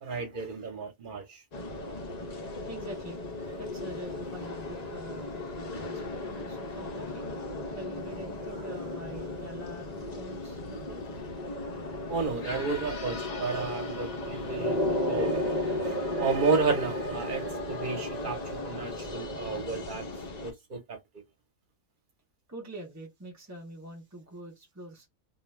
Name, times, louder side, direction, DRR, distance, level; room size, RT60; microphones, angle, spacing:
voice 1, 0.0-1.4 12.1-20.0 20.4-21.0, right 4 dB, 45° right, 0.9 m, -32 dB
mbkl bistro wide, 1.5-20.5, left 1 dB, 45° left, 0.6 m, -35 dB
voice 2, 2.7-3.2 3.6-7.3 7.7-11.0 22.5-25.1, right 1 dB, 20° right, 0.5 m, -45 dB
2.3 x 2.3 x 3.1 m
omnidirectional pair, 1.4 m